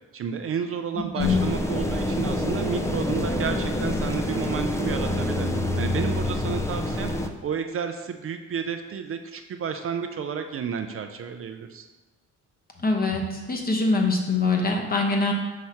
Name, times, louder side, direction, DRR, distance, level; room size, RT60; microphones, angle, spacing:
voice 1, 0.1-5.5 5.8-7.1 7.4-11.9, right 7 dB, 45° right, 6 dB, 0.5 m, -31 dB
voice 2, 1.1-1.5 12.8-15.3, left 3 dB, 30° left, 1 dB, 1.0 m, -23 dB
sound 1, 1.2-7.3, left 1 dB, 10° left, 0.4 m, -27 dB
5.8 x 3.1 x 5.5 m, 1.2 s
cardioid pair, 90°, 30 cm